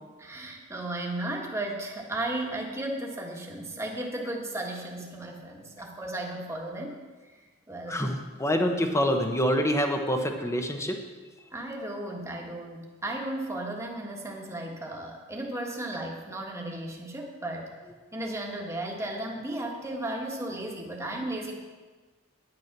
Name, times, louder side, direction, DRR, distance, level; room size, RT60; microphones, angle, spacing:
voice 1, 0.2-7.0 7.7-8.1 11.5-17.7 18.1-21.5, right 1 dB, 15° right, 0 dB, 1.5 m, -35 dB
voice 2, 7.9-11.0, equal, 15° left, 4 dB, 1.0 m, -26 dB
9.9 x 9.6 x 6.0 m, 1.4 s
head